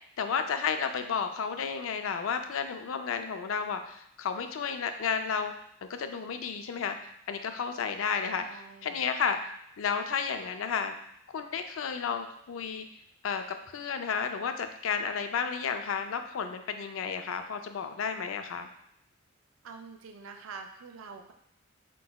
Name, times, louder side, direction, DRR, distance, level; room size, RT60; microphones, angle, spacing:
voice 1, 0.2-5.5 5.8-7.0 7.3-9.4 9.8-10.9 11.3-12.9 13.2-13.4 13.7-18.7, left 6 dB, 90° left, 7 dB, 0.4 m, -32 dB
voice 2, 8.4-9.1 19.6-21.3, right 5 dB, 85° right, 4 dB, 0.4 m, -46 dB
4.6 x 3.8 x 2.2 m, 0.71 s
head